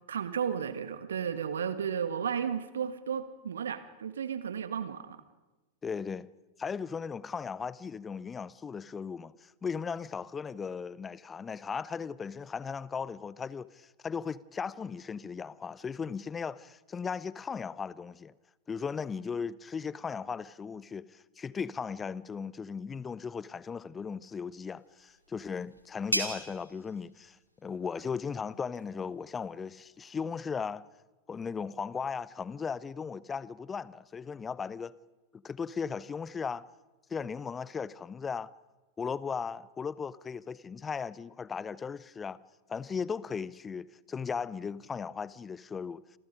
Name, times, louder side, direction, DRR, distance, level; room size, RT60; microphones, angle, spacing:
voice 1, 0.1-5.2, right 7 dB, 65° right, 1.6 m, -33 dB
voice 2, 5.8-6.3 6.6-18.3 18.7-27.4 27.6-30.9 31.3-34.9 35.3-36.6 37.1-38.5 39.0-42.4 42.7-46.0, left 6 dB, 20° left, 0.8 m, -37 dB
sound 1, 24.8-30.2, right 1 dB, 90° right, 2.7 m, -40 dB
29.0 x 27.5 x 5.2 m
figure-of-eight pair, 90°, 0 cm